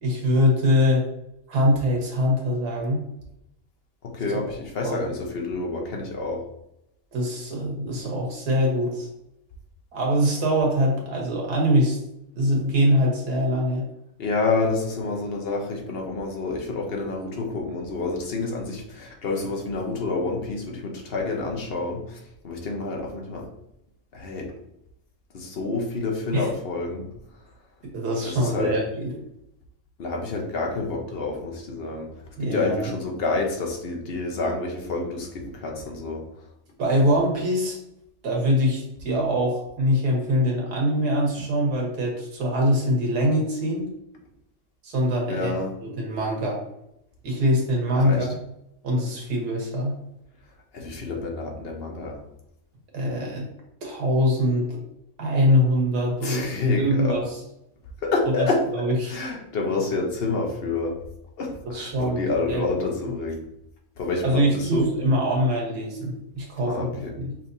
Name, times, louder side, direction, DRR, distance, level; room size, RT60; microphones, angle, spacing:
voice 1, 0.0-1.0 1.5-3.0 4.5-4.6 4.8-5.1 7.1-9.1 9.9-12.0 12.4-13.8 26.3-26.5 27.9-29.2 32.4-32.9 36.8-37.8 38.2-43.9 44.8-46.6 47.2-48.3 48.8-49.9 52.9-53.5 53.8-54.8 55.2-57.4 58.4-58.5 58.7-59.1 61.6-62.6 64.2-67.3, equal, 80° right, -1 dB, 1.8 m, -23 dB
voice 2, 4.0-6.4 14.2-23.5 24.1-24.5 25.3-27.1 28.2-28.7 30.0-32.1 32.4-36.2 45.3-45.7 48.0-48.3 50.7-52.2 56.2-57.2 58.0-58.6 59.1-61.0 61.4-63.4 64.0-64.8 66.7-67.1, left 3 dB, 45° left, 1 dB, 0.9 m, -28 dB
5.8 x 3.2 x 2.6 m, 0.81 s
omnidirectional pair, 1.6 m